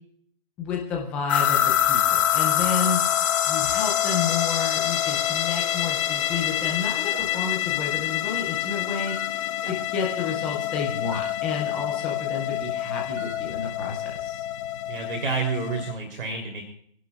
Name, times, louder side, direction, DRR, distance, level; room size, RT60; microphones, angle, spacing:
voice 1, 0.6-3.0 3.4-14.4, left 6 dB, 5° left, -1 dB, 0.4 m, -31 dB
sound 1, 1.3-15.9, left 12 dB, 30° left, 1.1 m, -26 dB
Alarm, 2.8-6.8 7.1-7.5 8.4-8.5 9.1-9.3 11.1-11.3 13.2-13.4, right 9 dB, 30° right, 1.9 m, -42 dB
voice 2, 14.9-16.6, right 4 dB, 60° right, 3 dB, 3.3 m, -29 dB
26.5 x 11.0 x 2.4 m, 0.62 s
hypercardioid pair, 150°, 32 cm